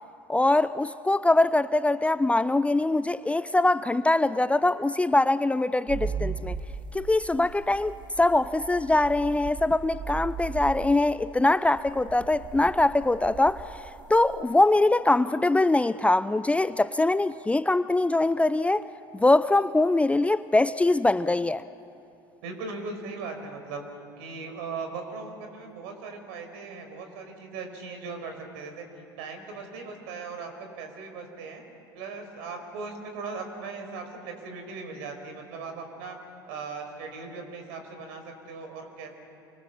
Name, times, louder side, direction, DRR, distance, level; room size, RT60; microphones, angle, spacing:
voice 1, 0.3-6.6 6.9-13.6 14.1-18.9 19.1-21.6, left 2 dB, 10° left, 0.6 m, -23 dB
sound 1, 5.9-14.4, right 6 dB, 40° right, 1.7 m, -37 dB
voice 2, 22.4-23.8 24.2-28.8 29.2-31.6 31.9-36.2 36.5-39.1, right 4 dB, 65° right, 5.3 m, -38 dB
28.5 x 23.5 x 7.3 m
hypercardioid pair, 70°, 12 cm